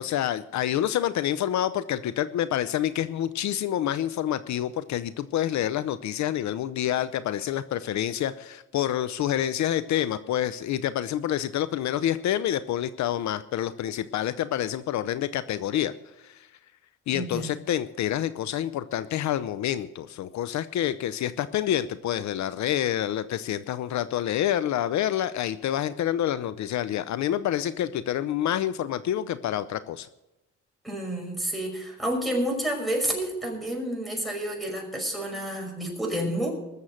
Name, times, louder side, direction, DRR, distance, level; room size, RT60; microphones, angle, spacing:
voice 1, 0.0-16.5 17.1-30.1, left 11 dB, 65° left, 14 dB, 0.6 m, -28 dB
voice 2, 17.1-17.5 30.8-36.5, right 1 dB, ahead, 1 dB, 5.7 m, -29 dB
20.5 x 7.2 x 6.4 m, 0.99 s
cardioid pair, 90°, 30 cm